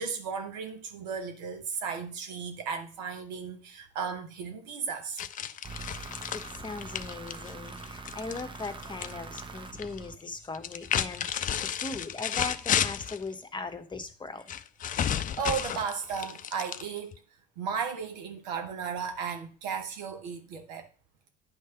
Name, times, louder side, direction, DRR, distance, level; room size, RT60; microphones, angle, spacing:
voice 1, 0.0-5.2 15.1-17.2 17.6-20.9, right 6 dB, 80° right, 1.0 m, -35 dB
sound 1, 5.2-9.1 9.4-10.0 10.5-13.2 14.5-17.2, left 9 dB, 40° left, 0.5 m, -32 dB
sound 2, 5.6-10.6, right 4 dB, 25° right, 0.8 m, -43 dB
voice 2, 6.3-14.5, left 3 dB, 20° left, 1.0 m, -39 dB
9.8 x 3.3 x 5.7 m
hypercardioid pair, 60°, 21 cm